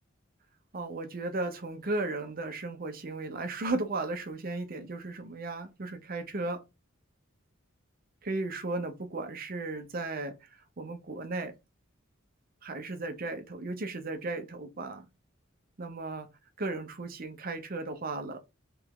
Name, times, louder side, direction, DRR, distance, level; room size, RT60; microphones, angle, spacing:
voice 1, 0.7-6.6 8.2-11.6 12.6-15.1 15.8-16.3 16.6-18.4, right 2 dB, 45° right, 0.7 m, -35 dB
3.5 x 3.0 x 3.6 m
head